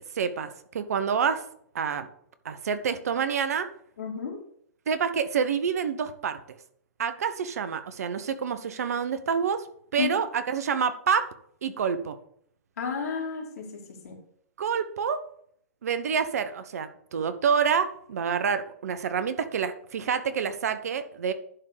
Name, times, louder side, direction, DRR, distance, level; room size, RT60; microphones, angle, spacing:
voice 1, 0.1-1.4 1.7-2.1 2.4-3.7 4.9-6.6 7.0-9.7 9.9-11.3 11.6-12.2 14.6-15.2 15.8-21.3, right 6 dB, 75° right, 11 dB, 1.0 m, -27 dB
voice 2, 4.0-4.4 10.0-10.2 12.8-14.2, left 6 dB, 75° left, 0 dB, 2.7 m, -32 dB
11.0 x 3.8 x 6.5 m, 0.66 s
hypercardioid pair, 120°, 8 cm